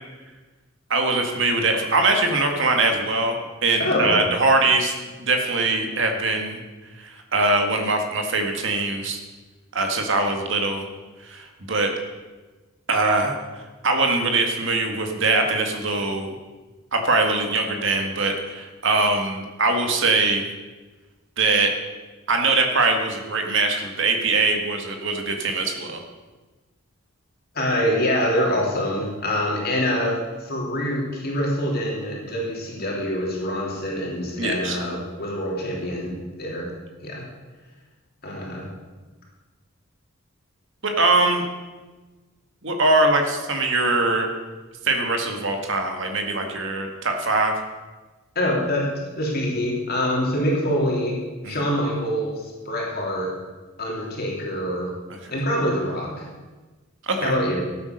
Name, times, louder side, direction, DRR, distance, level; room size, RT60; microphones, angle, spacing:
voice 1, 0.9-6.6 7.0-9.2 9.7-10.8 11.2-11.9 12.9-13.4 13.8-16.4 16.9-20.4 21.4-21.7 22.3-26.0 34.4-34.8 40.8-41.4 42.6-44.3 44.8-47.5 51.4-51.6 57.0-57.3, right 3 dB, 60° right, 3 dB, 1.8 m, -22 dB
voice 2, 3.8-4.2 27.5-36.7 37.0-37.2 38.2-38.6 48.3-48.9 49.2-51.2 51.4-53.3 53.8-54.9 55.3-56.3 57.2-57.6, equal, 45° left, -3 dB, 3.1 m, -25 dB
13.5 x 8.5 x 6.6 m, 1.2 s
head